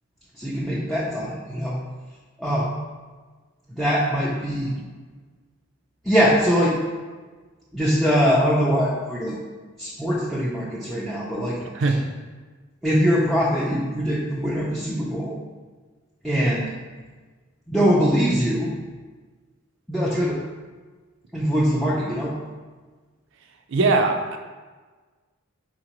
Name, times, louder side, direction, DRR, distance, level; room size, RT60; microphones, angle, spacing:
voice 1, 0.4-1.8 2.4-2.8 3.7-4.7 6.0-6.8 7.7-9.4 9.8-11.9 12.8-15.4 16.2-16.7 17.7-18.7 19.9-20.4 21.3-22.3, equal, ahead, -7 dB, 0.4 m, -22 dB
voice 2, 23.7-24.4, right 3 dB, 60° right, 4 dB, 0.4 m, -20 dB
4.3 x 3.8 x 3.0 m, 1.4 s
head